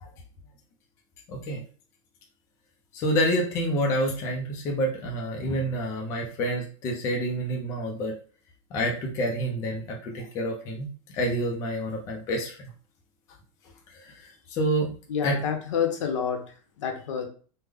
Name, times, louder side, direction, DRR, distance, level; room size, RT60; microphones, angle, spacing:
voice 1, 1.3-1.6 2.9-8.1 8.7-10.9 11.1-12.7 13.9-14.9 15.2-15.4, equal, 20° left, 0 dB, 0.4 m, -28 dB
voice 2, 15.1-16.4 16.8-17.3, left 7 dB, 70° left, 5 dB, 0.8 m, -28 dB
3.3 x 2.0 x 3.4 m, 0.41 s
supercardioid pair, 175°, 17 cm